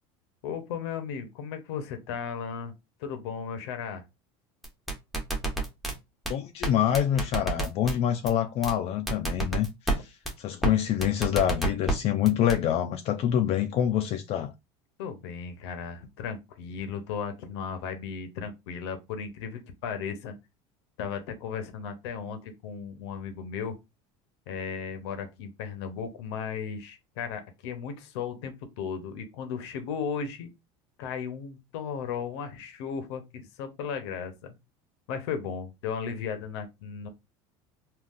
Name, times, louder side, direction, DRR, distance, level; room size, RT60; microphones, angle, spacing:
voice 1, 0.4-2.7 3.0-4.0 15.0-20.3 21.0-23.8 24.5-30.5 31.0-34.5 35.1-37.1, left 6 dB, 85° left, 0.7 m, -35 dB
sound 1, 4.6-5.9 6.3-6.4 6.6-6.7 6.9-7.9 8.3-8.4 8.6-8.7 9.1-10.0 10.3-10.4 10.6-10.7 11.0-11.9 12.3-12.6, right 2 dB, ahead, 0.8 m, -27 dB
voice 2, 6.3-10.1 10.4-14.5, left 10 dB, 50° left, 0.4 m, -26 dB
3.7 x 2.4 x 2.4 m
supercardioid pair, 125°, 14 cm